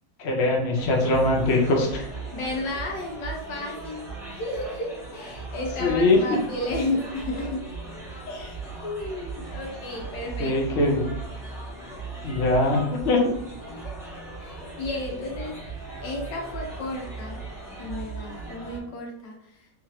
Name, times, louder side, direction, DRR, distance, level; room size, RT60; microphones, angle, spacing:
voice 1, 0.2-2.1 5.8-6.4 10.4-11.1 12.2-13.3, left 2 dB, 50° left, 0 dB, 0.8 m, -22 dB
sound 1, 0.7-18.8, right 3 dB, ahead, 0.8 m, -38 dB
voice 2, 2.3-4.1 4.3-7.6 8.2-10.8 13.6-13.9 14.4-15.5 16.0-17.4 17.7-19.5, left 2 dB, 75° left, 0 dB, 1.5 m, -33 dB
3.6 x 3.1 x 3.0 m, 0.80 s
omnidirectional pair, 2.0 m